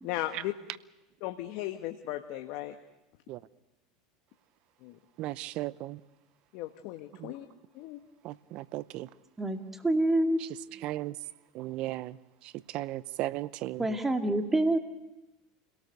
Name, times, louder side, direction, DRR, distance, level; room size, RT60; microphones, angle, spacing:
voice 1, 0.0-0.5 1.2-2.8 4.8-5.0 6.5-7.5 7.7-8.0, left 15 dB, 65° left, 7 dB, 1.2 m, -36 dB
voice 2, 5.2-6.0 7.2-7.3 8.2-9.1 10.8-11.1 11.5-12.2 12.7-13.9, right 16 dB, 55° right, 19 dB, 0.7 m, -35 dB
voice 3, 9.8-10.4 13.8-14.8, right 1 dB, 15° right, 6 dB, 2.3 m, -26 dB
28.5 x 18.0 x 6.8 m, 1.0 s
hypercardioid pair, 95°, 2 cm